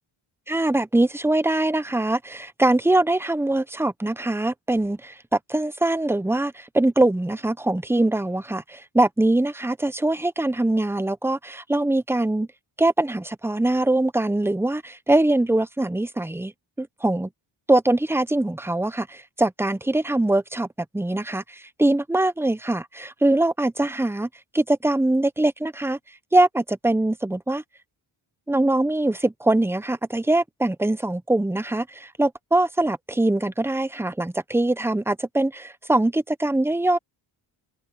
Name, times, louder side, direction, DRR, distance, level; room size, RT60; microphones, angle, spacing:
voice 1, 0.5-12.5 12.8-16.5 16.8-17.3 17.7-20.7 20.9-24.3 24.5-26.0 26.3-27.6 28.5-37.0, right 2 dB, 5° right, 0.8 m, -22 dB
open air
cardioid pair, 85°, 49 cm